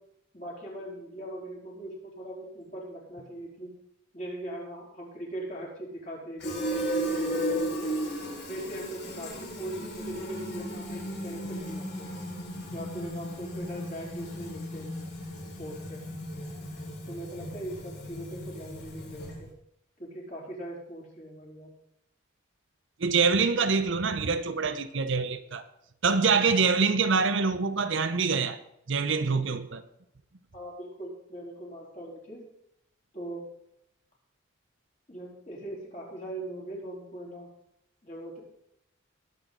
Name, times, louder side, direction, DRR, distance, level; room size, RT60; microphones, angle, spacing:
voice 1, 0.3-3.7 4.1-8.0 8.4-12.1 12.7-14.9 15.6-16.0 17.0-19.5 20.0-21.7 30.5-32.4 33.1-33.4 35.1-37.5 38.0-38.4, right 1 dB, 35° left, 4.0 m, -40 dB
Fill (with liquid), 6.4-19.5, equal, 55° left, 4.6 m, -35 dB
voice 2, 23.0-25.6 26.0-28.6 28.9-29.8, right 5 dB, 60° right, 0.7 m, -25 dB
20.0 x 8.0 x 3.9 m
head